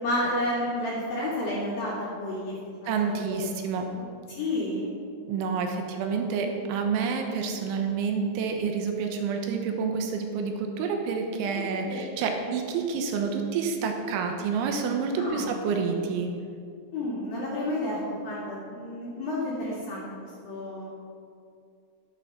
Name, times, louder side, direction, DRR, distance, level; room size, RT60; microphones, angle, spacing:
voice 1, 0.0-2.5 2.8-3.5 4.3-4.9 11.8-12.2 15.2-15.5 16.9-18.0 18.2-20.9, left 1 dB, 55° left, -7 dB, 3.5 m, -31 dB
voice 2, 2.9-3.9 5.3-16.3, right 5 dB, 80° right, 4 dB, 3.2 m, -28 dB
11.5 x 9.5 x 6.0 m, 2.4 s
omnidirectional pair, 5.9 m